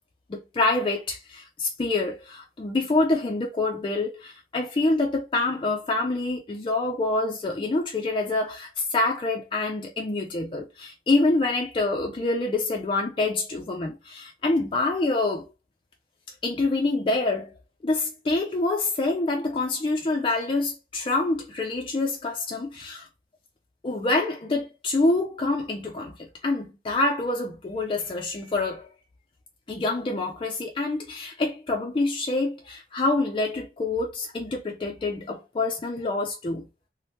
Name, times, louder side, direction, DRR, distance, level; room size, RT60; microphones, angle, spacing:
voice 1, 0.3-15.5 16.4-17.5 17.8-23.1 23.8-28.9 29.7-36.6, left 2 dB, 30° left, 0.3 m, -26 dB
3.3 x 2.0 x 2.7 m
head